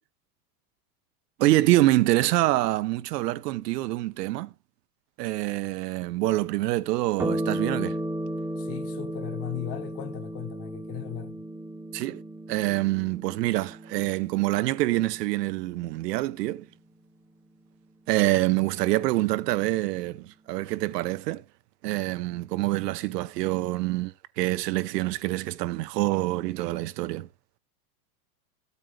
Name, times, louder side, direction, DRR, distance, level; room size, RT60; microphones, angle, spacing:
voice 1, 1.4-4.5 5.2-8.0 11.9-12.2 12.5-16.7 18.1-21.4 21.8-27.3, right 17 dB, 90° right, 0.8 m, -26 dB
sound 1, 7.2-16.0, right 1 dB, 5° right, 0.5 m, -35 dB
voice 2, 8.5-11.4, left 11 dB, 30° left, 1.1 m, -37 dB
13.5 x 8.3 x 3.2 m
supercardioid pair, 170°, 47 cm